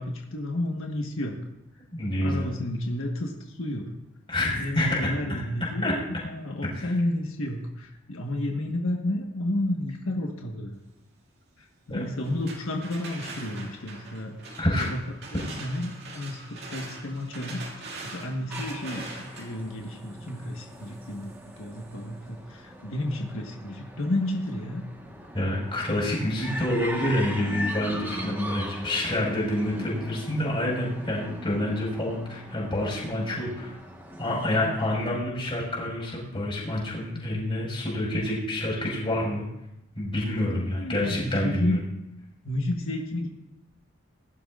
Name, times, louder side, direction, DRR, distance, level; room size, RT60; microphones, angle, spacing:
voice 1, 0.0-1.4 2.2-3.9 4.6-5.9 6.2-10.7 11.6-14.5 14.8-15.0 15.3-24.9 40.4-41.8 42.4-43.3, left 1 dB, 85° left, 0 dB, 1.4 m, -31 dB
voice 2, 1.9-2.5 4.3-5.1 5.8-5.9 6.7-6.9 11.9-12.0 14.6-14.8 25.3-33.7 34.2-39.5 39.9-41.8, left 1 dB, 25° left, -5 dB, 5.0 m, -27 dB
sound 1, 12.2-22.0, right 3 dB, 55° right, 2.4 m, -43 dB
sound 2, 18.5-35.1, equal, 10° right, 1.3 m, -40 dB
21.0 x 11.5 x 2.5 m, 0.88 s
head